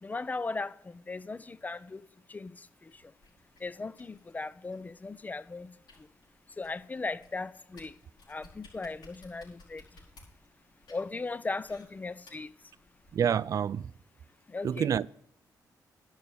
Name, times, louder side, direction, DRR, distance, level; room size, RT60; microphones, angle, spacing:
voice 1, 0.0-2.0 2.3-3.0 3.6-5.7 6.6-7.9 8.3-9.8 10.9-12.5 14.5-14.9, left 3 dB, 20° left, 0.5 m, -37 dB
sound 1, 2.9-13.2, left 2 dB, 75° left, 5.0 m, -59 dB
voice 2, 13.1-13.9 14.6-15.1, right 8 dB, 55° right, 0.3 m, -28 dB
11.0 x 6.4 x 7.1 m
cardioid pair, 85°, 7 cm